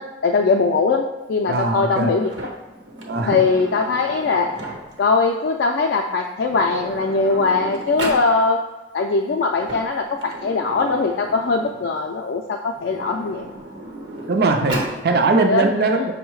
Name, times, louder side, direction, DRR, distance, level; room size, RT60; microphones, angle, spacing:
voice 1, 0.0-2.3 3.3-4.7 5.0-8.6 8.9-13.5 15.4-15.7, left 4 dB, 65° left, 2 dB, 0.3 m, -21 dB
voice 2, 1.5-2.1 3.1-3.4 14.3-16.1, right 3 dB, 55° right, 5 dB, 0.4 m, -20 dB
Sliding door, 2.2-5.1 6.1-6.2 6.4-8.3 9.4-11.9 12.7-15.0, right 1 dB, 75° right, 0.9 m, -34 dB
5.4 x 2.1 x 4.6 m, 1.2 s
head